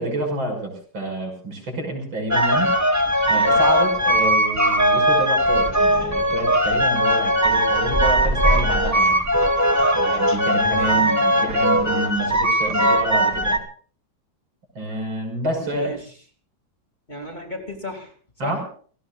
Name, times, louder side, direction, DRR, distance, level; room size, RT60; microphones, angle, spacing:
voice 1, 0.0-2.7 3.3-9.2 9.9-13.6 14.8-15.9 18.4-18.6, right 1 dB, 75° right, 3 dB, 6.9 m, -28 dB
sound 1, 2.3-13.6, equal, 10° right, 1.2 m, -19 dB
voice 2, 10.7-11.3 15.6-16.0 17.1-18.1 18.4-18.6, left 1 dB, 20° left, 2 dB, 2.6 m, -34 dB
29.0 x 17.0 x 2.4 m, 0.43 s
omnidirectional pair, 2.2 m